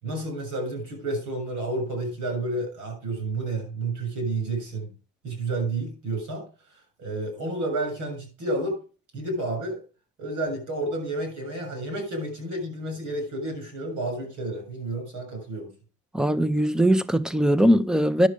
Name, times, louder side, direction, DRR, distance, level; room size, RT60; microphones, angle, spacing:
voice 1, 0.0-4.9 5.2-6.4 7.0-8.8 9.1-9.8 10.2-15.7, right 2 dB, 85° right, 7.0 m, -30 dB
voice 2, 16.1-18.3, equal, ahead, 0.7 m, -20 dB
11.0 x 6.3 x 5.0 m
cardioid pair, 90°, 30 cm